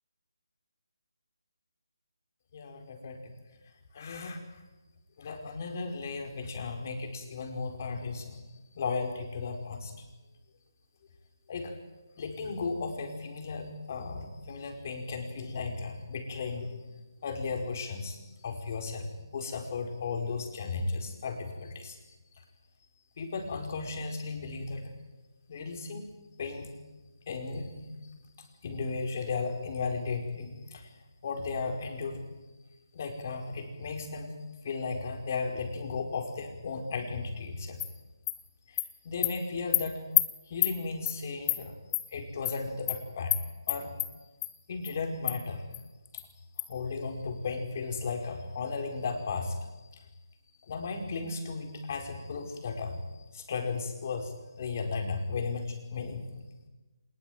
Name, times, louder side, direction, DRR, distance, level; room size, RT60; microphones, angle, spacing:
voice 1, 2.5-3.3 3.9-4.4 5.2-8.4 8.7-9.9 11.5-11.7 12.2-16.8 17.2-22.0 23.2-24.8 25.5-26.1 26.4-26.7 27.3-27.9 28.4-30.9 31.2-32.2 32.9-34.3 34.6-37.8 38.7-40.0 40.5-41.7 42.1-43.4 43.7-44.0 44.7-45.6 46.1-46.2 46.6-49.6 49.9-50.1 50.6-53.0 53.3-56.2, left 4 dB, 40° left, 4 dB, 5.0 m, -35 dB
Animal, 37.8-37.9 38.3-38.4 38.8-38.9 39.2-39.3 39.7-39.8 40.2-40.3 40.6-40.7 41.1-41.2 41.5-41.6 41.9-42.0 42.4-42.6 42.9-43.0 43.3-43.4 43.7-44.1 44.4-44.5 44.8-44.9 45.3-45.4 45.7-45.8 46.2-46.3 46.6-46.7, left 16 dB, 20° left, 1.2 m, -27 dB
26.0 x 20.0 x 9.4 m, 1.2 s
figure-of-eight pair, 160°, 2 cm